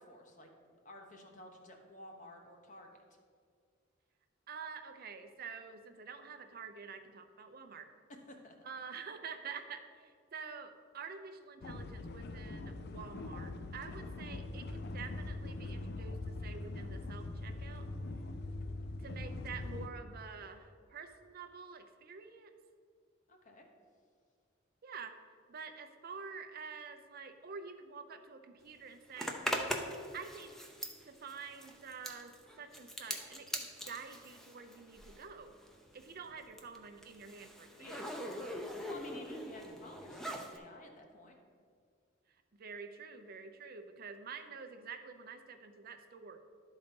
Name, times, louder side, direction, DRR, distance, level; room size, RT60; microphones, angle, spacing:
voice 1, 0.0-2.9 8.1-8.5 23.3-23.7 37.8-38.1 38.9-41.3, left 1 dB, 40° left, 2 dB, 1.0 m, -53 dB
voice 2, 4.5-7.9 8.6-17.9 19.0-22.5 24.8-25.1 25.5-29.6 30.1-30.5 31.0-32.3 32.6-35.5 35.9-37.9 42.6-46.4, right 5 dB, 50° right, 7 dB, 0.5 m, -48 dB
sound 1, 11.6-19.9, left 2 dB, 55° left, 0.5 m, -42 dB
Zipper (clothing), 29.2-35.3 35.6-40.6, equal, ahead, 0.6 m, -42 dB
11.5 x 4.0 x 5.2 m, 2.1 s
head